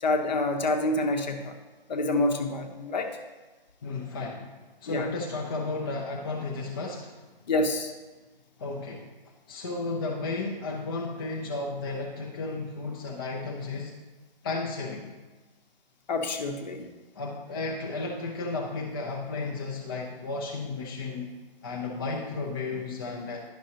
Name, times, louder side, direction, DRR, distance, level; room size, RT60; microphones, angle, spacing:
voice 1, 0.0-1.5 1.9-3.1 4.9-5.1 7.5-7.9 16.1-16.9, left 2 dB, 45° left, 5 dB, 0.9 m, -27 dB
voice 2, 3.8-4.5 4.8-7.2 8.6-9.0 9.5-13.9 14.4-15.1 17.2-21.3 21.6-23.4, left 3 dB, 25° left, -1 dB, 0.5 m, -33 dB
10.5 x 6.1 x 2.8 m, 1.3 s
hypercardioid pair, 155°, 29 cm